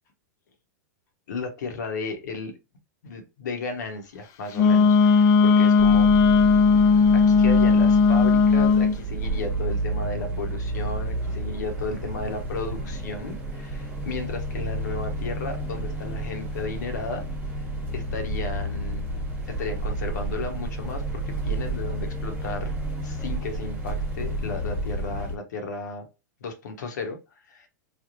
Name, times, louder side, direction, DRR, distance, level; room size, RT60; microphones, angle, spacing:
voice 1, 1.3-2.5 3.0-6.1 7.1-17.2 17.9-19.1 19.5-22.7 23.0-26.1 26.4-27.2 27.5-27.7, left 3 dB, 80° left, 1.1 m, -34 dB
Wind instrument woodwind instrument, 4.5-8.9, left 5 dB, 35° left, 0.5 m, -17 dB
sound 1, 5.8-25.4, right 2 dB, 15° right, 1.1 m, -31 dB
3.4 x 2.4 x 2.5 m
hypercardioid pair, 120°, 9 cm